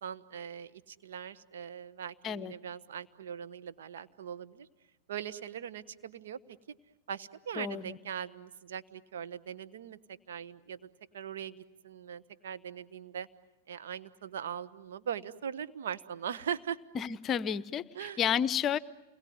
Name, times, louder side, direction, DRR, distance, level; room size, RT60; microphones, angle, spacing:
voice 1, 0.0-4.7 5.1-6.6 7.1-10.0 10.3-13.3 13.7-16.8 17.9-18.2, right 8 dB, 75° right, 12 dB, 1.3 m, -40 dB
voice 2, 7.6-8.0 16.9-17.8 18.2-18.8, left 8 dB, 30° left, 17 dB, 0.9 m, -31 dB
29.0 x 21.5 x 9.5 m, 1.0 s
hypercardioid pair, 105°, 0 cm